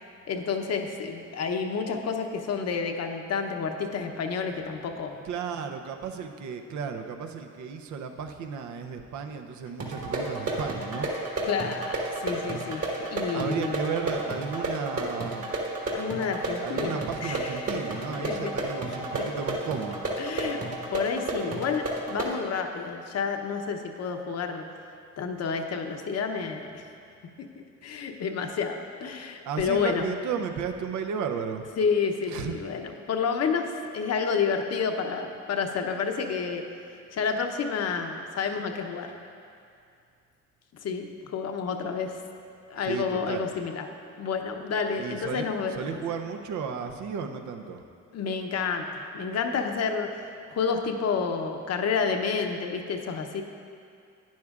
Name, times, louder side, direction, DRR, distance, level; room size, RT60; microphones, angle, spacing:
voice 1, 0.3-5.2 11.4-13.9 15.9-18.5 20.2-20.6 20.9-24.7 25.2-26.9 27.8-30.1 31.8-39.1 40.8-42.2 42.7-43.9 44.2-46.0 48.1-50.2 50.5-53.4, left 5 dB, 55° left, 4 dB, 0.8 m, -30 dB
voice 2, 5.2-11.1 13.3-15.5 16.5-20.1 29.4-31.7 32.3-32.6 42.8-43.5 45.0-47.8, right 6 dB, 75° right, 6 dB, 0.7 m, -34 dB
sound 1, 9.8-22.4, right 2 dB, 55° right, 1.7 m, -32 dB
11.5 x 9.5 x 2.5 m, 2.4 s
cardioid pair, 90°, 30 cm